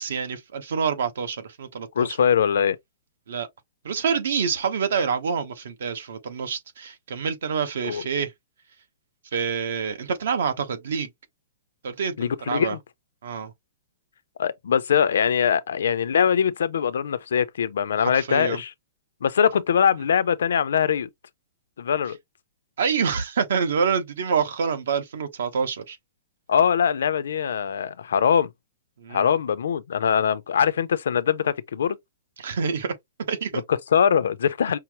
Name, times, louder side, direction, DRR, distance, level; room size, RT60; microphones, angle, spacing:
voice 1, 0.0-2.2 3.3-3.5 3.8-8.3 9.3-11.1 11.8-12.8 13.2-13.5 18.0-18.6 22.8-26.0 29.0-29.3 32.4-32.9 33.3-33.6, right 6 dB, 70° right, 1.1 m, -27 dB
voice 2, 2.0-2.8 7.8-8.0 12.2-12.8 14.4-18.7 19.2-21.1 21.8-22.2 26.5-28.5 29.1-32.0 33.7-34.8, left 7 dB, 85° left, 0.5 m, -22 dB
5.6 x 2.0 x 3.0 m
hypercardioid pair, 175°, 0 cm